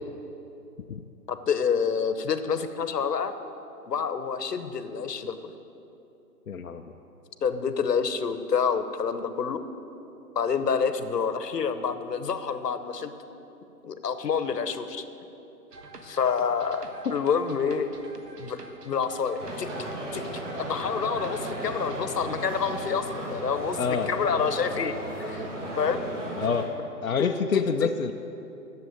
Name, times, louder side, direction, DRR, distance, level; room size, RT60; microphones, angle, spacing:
voice 1, 1.3-3.3 3.9-5.3 7.4-9.6 10.3-13.1 13.8-15.0 16.0-17.9 18.4-18.6 18.8-19.7 20.1-25.5 25.8-26.0 27.2-27.9, left 6 dB, 75° left, 10 dB, 1.1 m, -28 dB
voice 2, 6.5-6.8 17.1-17.2 23.8-24.1 26.4-26.7 27.0-28.1, left 6 dB, 60° left, 3 dB, 0.6 m, -27 dB
sound 1, 15.7-22.0, right 2 dB, 70° right, 1.5 m, -46 dB
sound 2, 19.4-26.7, right 1 dB, 50° right, 2.3 m, -35 dB
11.0 x 7.5 x 9.5 m, 2.9 s
hypercardioid pair, 180°, 49 cm